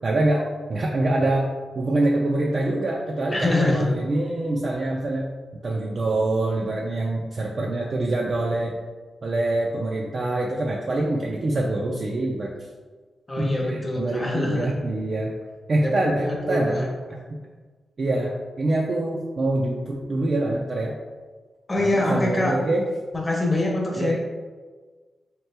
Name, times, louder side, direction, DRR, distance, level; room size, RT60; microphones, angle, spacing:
voice 1, 0.0-5.3 5.6-8.7 9.2-12.5 13.4-15.3 15.7-16.8 18.0-18.3 18.6-20.9 21.8-22.9 23.9-24.1, right 2 dB, 45° right, -2 dB, 0.4 m, -25 dB
voice 2, 3.3-3.9 13.3-14.7 15.8-17.2 21.7-22.5 23.1-24.1, left 1 dB, 20° left, -1 dB, 0.8 m, -24 dB
3.6 x 2.9 x 3.3 m, 1.4 s
wide cardioid pair, 115°, 0 cm